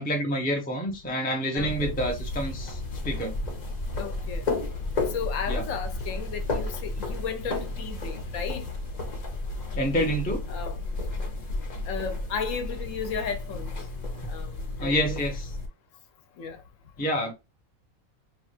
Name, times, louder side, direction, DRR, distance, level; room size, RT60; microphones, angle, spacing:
voice 1, 0.0-3.4 5.5-5.7 9.7-10.5 14.8-15.5 17.0-17.3, equal, 10° left, 0.4 m, -28 dB
voice 2, 1.5-1.9 4.0-4.4 5.1-8.7 10.5-10.8 11.9-13.7 14.3-15.2 16.4-16.6, left 6 dB, 70° left, 1.0 m, -34 dB
sound 1, 1.6-15.7, left 2 dB, 40° left, 0.7 m, -32 dB
2.9 x 2.4 x 4.3 m
omnidirectional pair, 1.5 m